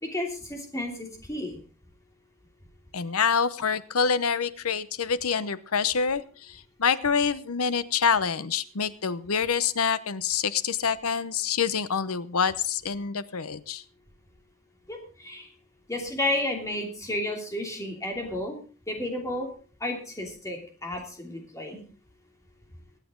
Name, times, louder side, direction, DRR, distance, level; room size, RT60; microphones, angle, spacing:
voice 1, 0.0-1.6 14.9-15.5 15.9-18.6 18.9-19.5 19.8-21.8, left 1 dB, 15° left, 2 dB, 3.0 m, -32 dB
voice 2, 2.9-13.8, left 6 dB, 85° left, 15 dB, 0.8 m, -26 dB
23.0 x 8.4 x 3.8 m, 0.38 s
head